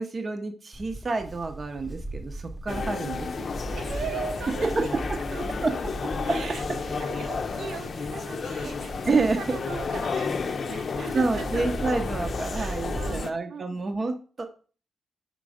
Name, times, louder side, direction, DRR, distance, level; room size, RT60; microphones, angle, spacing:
voice 1, 0.0-3.6 4.6-5.2 5.6-5.7 6.0-6.4 8.6-8.7 9.1-9.6 11.1-14.5, right 3 dB, 35° right, 5 dB, 0.7 m, -28 dB
Livestock farm animals working animals, 0.7-13.2, right 1 dB, 10° right, 0.9 m, -38 dB
sound 1, 2.7-13.3, left 5 dB, 50° left, 0.6 m, -32 dB
voice 2, 3.7-4.9 5.3-5.7 6.2-11.6 12.5-13.9, right 6 dB, 75° right, 5 dB, 1.0 m, -39 dB
5.2 x 3.8 x 4.9 m, 0.38 s
cardioid pair, 100°, 0 cm